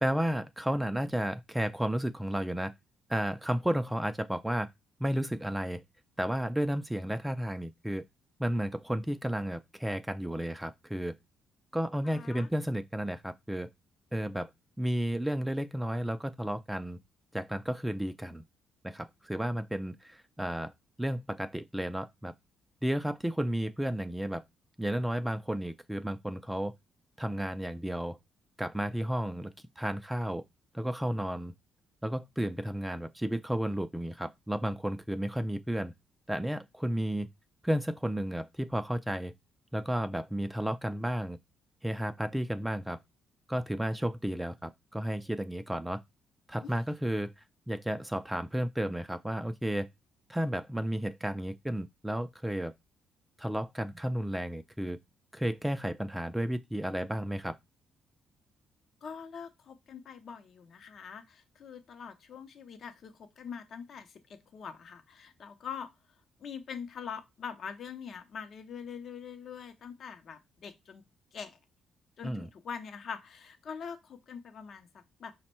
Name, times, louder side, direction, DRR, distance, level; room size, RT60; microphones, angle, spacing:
voice 1, 0.0-2.7 3.1-4.7 5.0-5.8 6.2-8.0 8.4-11.1 11.7-13.7 14.1-14.5 14.8-17.0 17.3-18.4 18.8-20.7 21.0-22.3 22.8-24.4 24.8-26.7 27.2-28.2 28.6-30.4 30.7-31.5 32.0-35.9 36.3-37.3 37.6-39.3 39.7-41.4 41.8-43.0 43.5-46.0 46.5-49.9 50.3-52.7 53.4-55.0 55.3-57.5 72.2-72.5, equal, 5° right, 0.3 m, -32 dB
voice 2, 12.0-12.5 46.6-46.7 59.0-65.9 66.4-71.0 71.3-71.6 72.2-75.3, left 6 dB, 60° left, 0.6 m, -43 dB
5.1 x 2.1 x 4.2 m
cardioid pair, 90°, 0 cm